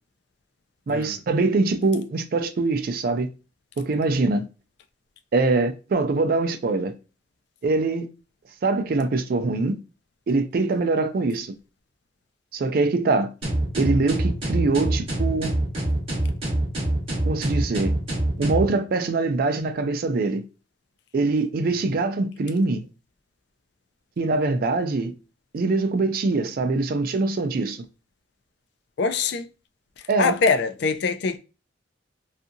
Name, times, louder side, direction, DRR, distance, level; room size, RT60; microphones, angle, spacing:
voice 1, 0.9-3.3 3.8-4.5 5.3-6.9 7.6-8.1 8.6-9.8 10.3-11.6 12.5-13.3 13.8-15.5 17.3-17.9 18.4-20.4 21.1-22.8 24.2-25.1 25.5-27.8 30.1-30.4, right 3 dB, 50° right, 0.3 m, -23 dB
sound 1, 13.4-18.7, right 1 dB, 30° right, 0.8 m, -25 dB
voice 2, 29.0-29.5 30.2-31.4, left 4 dB, 60° left, 0.3 m, -23 dB
2.6 x 2.4 x 2.5 m
head